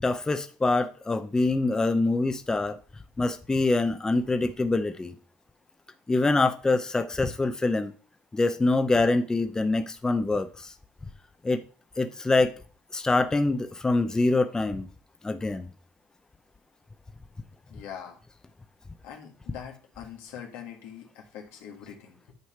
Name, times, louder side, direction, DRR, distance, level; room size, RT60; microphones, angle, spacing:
voice 1, 0.0-2.8 3.2-5.2 6.1-7.9 8.3-10.7 11.4-11.6 12.0-12.5 12.9-14.9 15.2-15.7, left 2 dB, 15° left, 0.6 m, -25 dB
voice 2, 17.7-18.2 19.0-22.3, left 8 dB, 85° left, 1.8 m, -43 dB
9.4 x 3.2 x 5.8 m
supercardioid pair, 90°, 4 cm